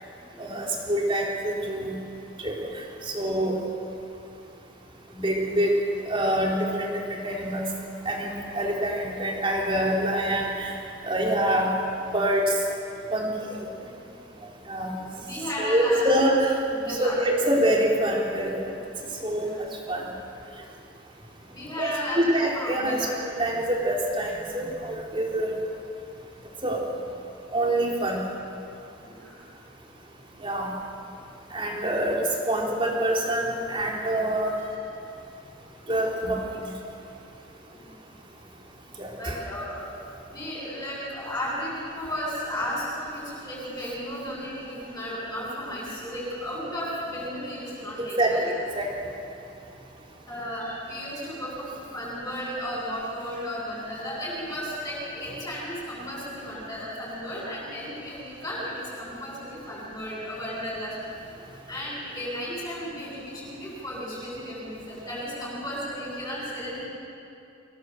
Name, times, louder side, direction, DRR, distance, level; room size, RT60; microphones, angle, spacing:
voice 1, 0.4-2.0 2.4-2.6 3.1-3.6 5.1-5.8 6.1-7.6 8.1-10.7 11.1-11.7 12.1-12.5 13.1-13.5 14.7-15.0 15.6-16.6 16.9-18.5 19.2-19.5 19.9-20.1 21.8-25.6 26.6-26.8 27.5-28.2 30.4-30.7 31.5-34.6 35.9-36.4 39.0-39.4 48.0-48.9, right 1 dB, 25° right, -2 dB, 3.5 m, -25 dB
voice 2, 15.2-16.0 16.7-17.2 19.4-19.7 21.5-23.1 24.6-24.7 29.0-29.4 37.7-38.1 39.1-48.5 50.3-61.1 61.7-66.9, equal, 20° left, -7 dB, 7.8 m, -34 dB
24.5 x 17.5 x 7.9 m, 2.7 s
head